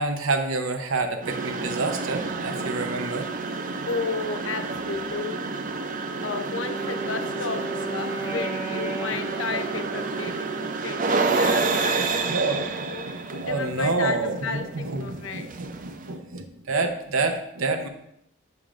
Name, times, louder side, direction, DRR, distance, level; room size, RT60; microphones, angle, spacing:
voice 1, 0.0-3.3 11.7-17.9, right 3 dB, 90° right, 6 dB, 0.7 m, -28 dB
sound 1, 1.2-16.1, right 4 dB, 40° right, 0.4 m, -29 dB
voice 2, 3.9-5.8 6.2-12.4 12.8-13.1 13.4-15.5, left 4 dB, 70° left, 8 dB, 0.6 m, -33 dB
Wind instrument woodwind instrument, 6.2-10.8, right 2 dB, 10° right, 1.0 m, -35 dB
6.9 x 6.2 x 2.5 m, 0.78 s
head